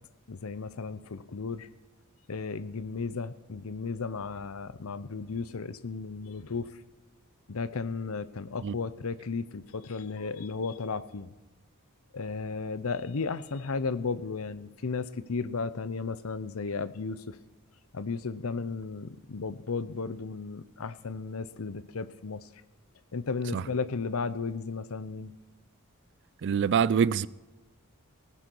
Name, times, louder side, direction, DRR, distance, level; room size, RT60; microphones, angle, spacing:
voice 1, 0.3-1.7 2.3-6.7 7.5-11.3 12.1-17.4 17.9-22.4 23.1-25.3, left 4 dB, 75° left, 0.7 m, -34 dB
voice 2, 26.4-27.3, right 7 dB, 55° right, 0.4 m, -25 dB
19.0 x 10.0 x 4.6 m
head